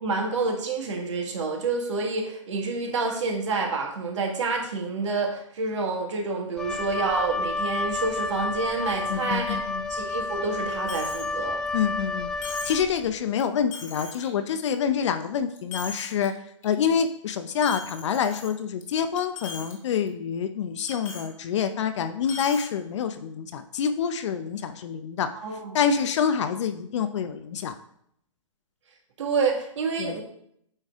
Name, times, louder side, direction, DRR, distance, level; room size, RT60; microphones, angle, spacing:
voice 1, 0.0-9.6 9.9-11.6 25.3-25.8 29.2-30.2, right 4 dB, 65° right, 2 dB, 1.6 m, -28 dB
Wind instrument woodwind instrument, 6.6-13.1, left 3 dB, 5° left, 0.3 m, -30 dB
voice 2, 9.1-9.9 11.7-12.3 12.6-16.3 16.6-25.3 25.7-27.8 30.0-30.2, left 7 dB, 60° left, 8 dB, 0.5 m, -27 dB
Coin (dropping), 10.9-11.3 11.7-11.8 12.4-12.9 13.4-13.5 13.7-14.3 14.7-15.3 15.6-16.3 16.6-16.9 17.6-18.8 19.2-19.7 20.1-20.2 20.9-21.3 22.2-22.7, left 4 dB, 80° left, 1.9 m, -39 dB
8.7 x 3.3 x 3.5 m, 0.70 s
hypercardioid pair, 130°, 17 cm